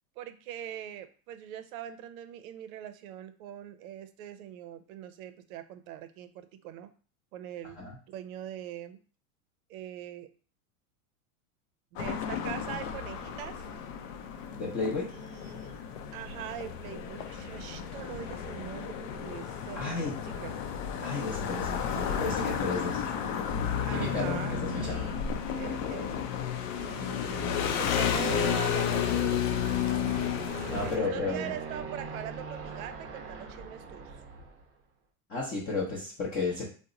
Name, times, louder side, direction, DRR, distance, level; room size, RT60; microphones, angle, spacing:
voice 1, 0.2-6.9 7.3-9.0 9.7-10.3 11.9-13.6 15.1-15.8 16.1-20.5 21.9-22.2 23.9-25.2 25.6-26.3 26.7-27.5 27.8-29.5 30.8-34.2, right 11 dB, 75° right, 10 dB, 0.6 m, -42 dB
sound 1, 12.0-31.0, left 8 dB, 60° left, 0.6 m, -32 dB
voice 2, 14.5-15.1 19.7-20.1 21.0-23.0 23.9-25.0 30.7-31.5 35.3-36.7, left 3 dB, 20° left, -5 dB, 0.6 m, -33 dB
Aircraft, 27.4-34.7, right 4 dB, 30° right, 0.6 m, -41 dB
2.9 x 2.1 x 3.7 m, 0.40 s
supercardioid pair, 140°, 44 cm